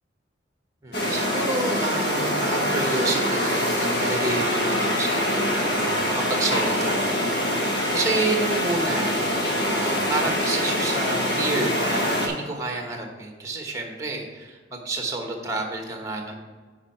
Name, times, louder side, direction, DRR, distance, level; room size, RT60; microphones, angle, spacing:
voice 1, 0.8-16.3, right 2 dB, 15° right, 2 dB, 1.1 m, -30 dB
sound 1, 0.9-12.3, equal, 60° left, 1.5 m, -24 dB
9.9 x 4.8 x 4.4 m, 1.4 s
head